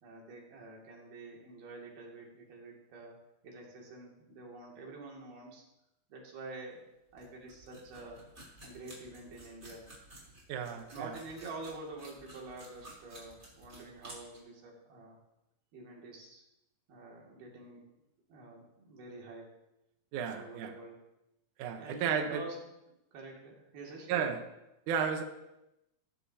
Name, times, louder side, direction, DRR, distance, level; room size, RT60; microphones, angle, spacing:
voice 1, 0.0-3.2 3.4-5.6 6.1-6.8 7.1-8.2 8.6-9.9 10.9-15.2 15.7-16.4 16.9-17.9 18.3-19.5 20.3-21.0 21.8-22.6 23.1-24.4, right 3 dB, 90° right, -2 dB, 4.3 m, -47 dB
sound 1, 7.1-14.4, right 1 dB, 20° right, 3.8 m, -53 dB
voice 2, 10.5-11.1 20.1-20.7 21.6-22.4 24.1-24.4 24.9-25.2, right 7 dB, 70° right, 5 dB, 2.2 m, -33 dB
19.5 x 10.5 x 2.8 m, 0.90 s
omnidirectional pair, 4.2 m